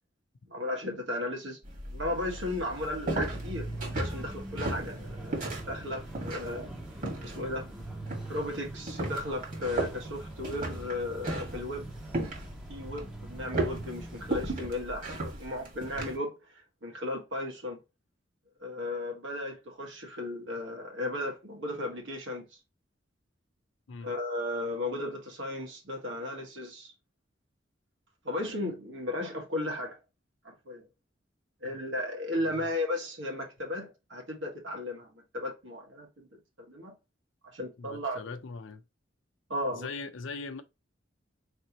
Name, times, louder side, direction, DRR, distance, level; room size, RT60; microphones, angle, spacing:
voice 1, 0.5-1.6 1.9-6.7 7.2-7.7 8.3-11.9 12.7-17.8 18.6-22.6 24.0-26.9 28.2-30.0 30.4-30.9 31.6-36.3 36.7-36.9 37.4-38.3 39.5-39.9, left 1 dB, 85° right, 1.7 m, -35 dB
sound 1, 1.6-16.2, right 2 dB, 45° right, 1.7 m, -37 dB
sound 2, 3.2-14.4, right 2 dB, 5° right, 0.7 m, -43 dB
voice 2, 37.8-38.8 39.7-40.6, left 4 dB, 90° left, 0.5 m, -41 dB
4.0 x 3.3 x 3.0 m
head